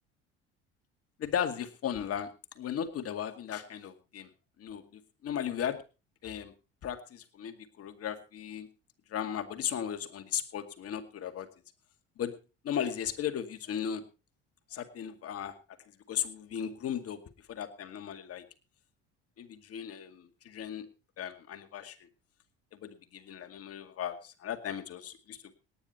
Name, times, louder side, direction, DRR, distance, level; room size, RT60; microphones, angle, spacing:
voice 1, 1.2-2.3 2.6-4.3 4.6-5.8 6.2-6.5 6.8-8.7 9.1-11.5 12.2-12.3 12.6-14.0 14.7-15.5 16.1-17.2 17.5-18.4 19.4-20.9 21.2-22.0 22.8-25.5, left 9 dB, 50° left, 8 dB, 2.2 m, -36 dB
18.5 x 9.9 x 4.3 m, 0.32 s
hypercardioid pair, 65°, 31 cm